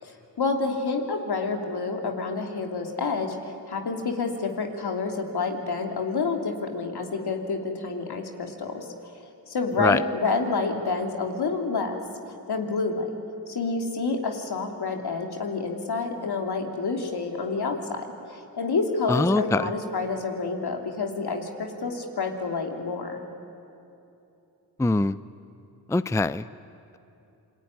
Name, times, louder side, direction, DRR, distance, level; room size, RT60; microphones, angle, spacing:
voice 1, 0.0-12.0 12.5-13.1 13.5-23.2, left 4 dB, 70° left, 3 dB, 3.2 m, -29 dB
voice 2, 19.1-19.6 24.8-25.2 25.9-26.4, left 2 dB, 5° left, 16 dB, 0.5 m, -22 dB
27.5 x 21.5 x 9.7 m, 2.8 s
cardioid pair, 45°, 40 cm